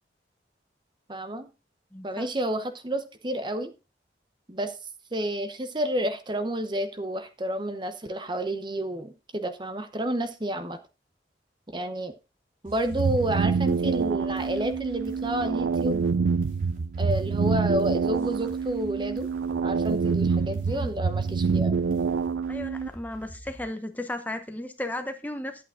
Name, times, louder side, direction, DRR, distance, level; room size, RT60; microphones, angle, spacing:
voice 1, 1.1-1.5 2.0-3.7 4.5-4.8 5.1-10.8 11.7-12.1 12.6-16.0 17.0-19.3 19.6-21.7, right 1 dB, 25° right, 9 dB, 0.8 m, -30 dB
voice 2, 1.9-2.2 20.7-20.9 22.5-25.6, left 1 dB, 10° left, 8 dB, 0.9 m, -35 dB
sound 1, 12.6-23.6, right 1 dB, 50° right, 2.7 m, -46 dB
sound 2, 12.9-22.9, right 5 dB, 85° right, 0.5 m, -26 dB
11.0 x 8.7 x 3.7 m, 0.29 s
head